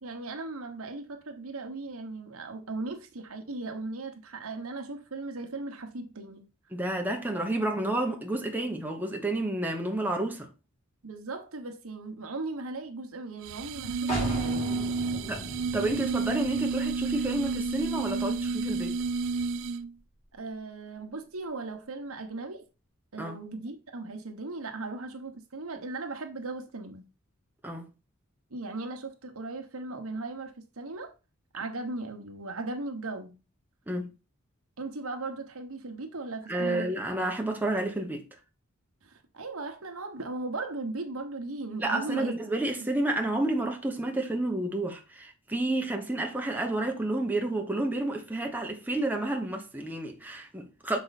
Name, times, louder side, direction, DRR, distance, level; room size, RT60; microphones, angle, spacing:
voice 1, 0.0-6.4 11.0-15.5 20.3-22.6 23.1-27.1 28.5-31.1 31.5-33.4 34.8-37.0 39.0-42.4, right 3 dB, 85° right, 1.3 m, -37 dB
voice 2, 6.7-10.5 15.3-19.0 23.2-23.4 27.6-27.8 33.9-34.1 36.5-38.2 41.8-51.0, right 1 dB, 10° right, 1.0 m, -30 dB
sound 1, 13.4-19.9, right 4 dB, 65° right, 0.3 m, -31 dB
sound 2, 14.1-19.6, equal, 30° left, 3.4 m, -38 dB
6.6 x 4.7 x 4.2 m
head